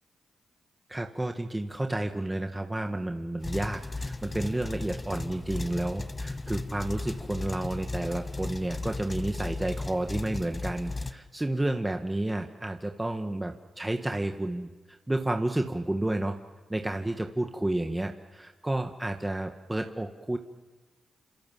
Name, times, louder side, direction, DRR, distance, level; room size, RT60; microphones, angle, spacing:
voice 1, 0.9-16.4 16.7-20.4, right 1 dB, 20° right, 5 dB, 1.9 m, -31 dB
sound 1, 3.4-11.1, left 2 dB, 30° left, 1.7 m, -36 dB
28.5 x 27.0 x 7.7 m, 1.3 s
supercardioid pair, 45°, 0 cm